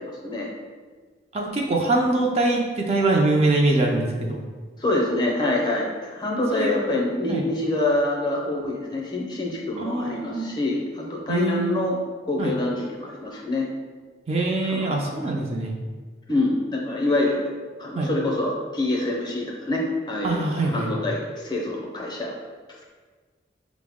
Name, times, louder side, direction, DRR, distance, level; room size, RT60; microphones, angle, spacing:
voice 1, 1.3-4.4 6.5-6.7 7.3-7.4 9.8-10.5 11.3-11.8 12.4-12.5 14.3-15.7 17.9-18.1 20.2-20.9, right 2 dB, 35° right, 0 dB, 0.4 m, -23 dB
voice 2, 4.8-12.0 12.2-13.7 14.6-15.1 16.3-17.4 17.8-22.3, left 2 dB, 25° left, -2 dB, 0.5 m, -26 dB
5.4 x 2.0 x 3.5 m, 1.5 s
head